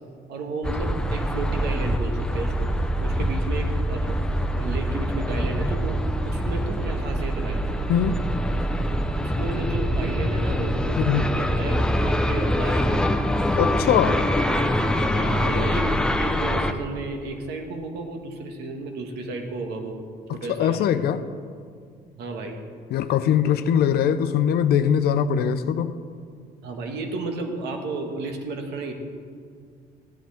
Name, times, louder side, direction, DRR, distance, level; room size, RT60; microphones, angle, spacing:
voice 1, 0.3-2.7 3.0-6.0 6.3-7.6 9.2-13.1 15.1-20.0 20.3-20.9 22.2-22.6 26.6-28.9, right 3 dB, 80° right, 1.6 m, -33 dB
sound 1, 0.6-16.7, equal, 5° left, 0.7 m, -24 dB
voice 2, 7.9-8.2 11.0-11.3 13.6-14.3 20.3-21.2 22.9-26.0, left 9 dB, 70° left, 0.6 m, -22 dB
15.5 x 10.0 x 3.5 m
cardioid pair, 110°, 17 cm